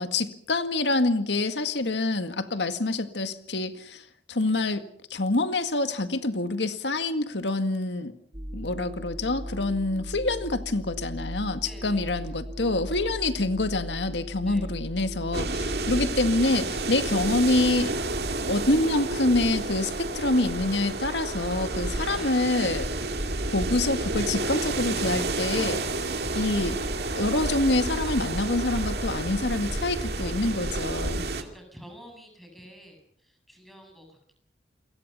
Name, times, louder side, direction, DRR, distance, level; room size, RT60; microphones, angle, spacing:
voice 1, 0.0-4.0 4.3-4.8 5.1-8.1 8.5-17.9 18.3-22.9 23.5-25.8 26.3-26.8 27.2-31.3, left 2 dB, 90° left, 9 dB, 2.0 m, -26 dB
sound 1, 8.3-16.5, equal, 30° right, 2.1 m, -37 dB
voice 2, 11.6-12.3 12.7-13.1 14.4-14.7 22.0-22.5 29.9-30.7 31.3-34.3, equal, ahead, 3 dB, 7.8 m, -49 dB
sound 2, 15.3-31.4, right 2 dB, 65° right, 2.4 m, -30 dB
28.5 x 23.0 x 5.6 m, 0.64 s
head